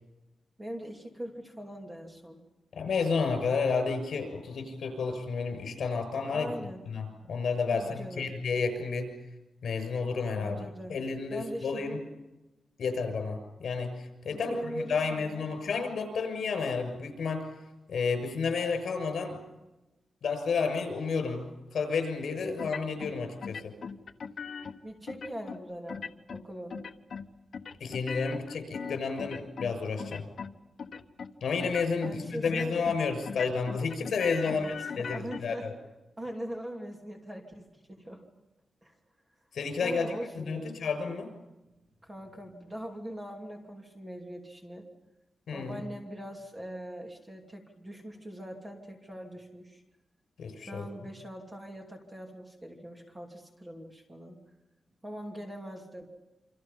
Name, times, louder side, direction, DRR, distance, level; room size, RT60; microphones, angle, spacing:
voice 1, 0.6-2.4 6.3-6.8 7.7-8.3 10.3-11.0 11.3-12.1 14.3-15.4 24.8-26.8 32.0-32.8 34.4-35.7 36.2-38.2 38.8-38.9 39.8-40.8 42.0-44.9 45.5-49.8 50.5-54.4 55.0-56.1, equal, 15° right, 1 dB, 2.9 m, -41 dB
voice 2, 2.7-6.5 6.9-9.1 9.6-10.6 10.9-12.0 12.8-17.4 17.9-19.4 20.2-23.7 27.8-30.2 31.4-34.7 35.0-35.7 39.5-41.3 45.5-45.8 50.4-50.8, left 5 dB, 65° left, 6 dB, 6.6 m, -31 dB
sound 1, 22.6-23.1 23.4-24.7 25.1-25.6 25.9-26.4 26.7-27.3 27.5-29.7 30.0-30.5 30.8-31.3 31.6-32.1 32.4-33.0 33.2-35.4, left 6 dB, 50° left, 1.2 m, -39 dB
28.0 x 26.0 x 5.7 m, 1.0 s
wide cardioid pair, 180°, 0 cm